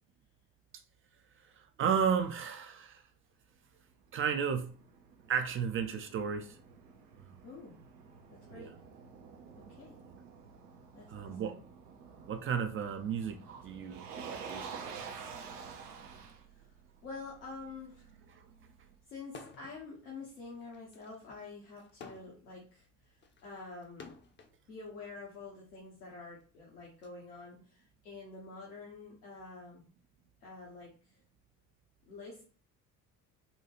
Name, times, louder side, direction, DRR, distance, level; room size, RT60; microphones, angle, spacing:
voice 1, 1.6-3.0 4.1-4.7 5.3-6.6 7.3-7.4 8.5-8.7 11.1-11.6 12.3-14.9 18.4-18.5, right 7 dB, 30° right, 0.3 m, -33 dB
Motor vehicle (road), 3.9-18.9, right 6 dB, 80° right, 0.6 m, -50 dB
voice 2, 7.4-7.8 8.3-8.7 9.6-10.0 10.9-11.6 16.4-16.7 17.0-18.2 19.1-24.1 24.7-29.9 30.4-31.2 32.0-32.4, left 3 dB, 80° left, 1.0 m, -48 dB
sound 1, 19.3-19.8 20.2-24.6 25.4-27.1, left 4 dB, 25° left, 0.6 m, -53 dB
4.1 x 2.3 x 2.9 m
figure-of-eight pair, 55°, 45 cm